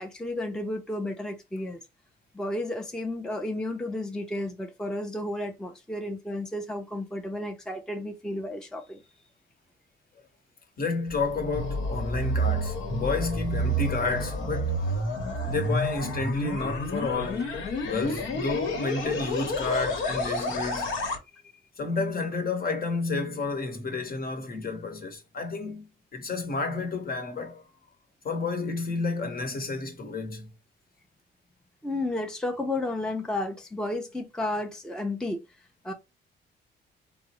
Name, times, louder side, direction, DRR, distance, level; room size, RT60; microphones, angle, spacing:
voice 1, 0.0-1.8 2.3-9.0 31.8-35.4 35.8-35.9, left 1 dB, 5° left, 0.5 m, -32 dB
voice 2, 10.8-14.9 15.4-17.5 17.8-20.9 21.8-25.9 26.1-27.8 28.2-30.5, left 3 dB, 50° left, 1.0 m, -30 dB
sound 1, 11.1-21.2, equal, 80° left, 1.0 m, -30 dB
3.5 x 2.0 x 2.9 m
cardioid pair, 90°, 20 cm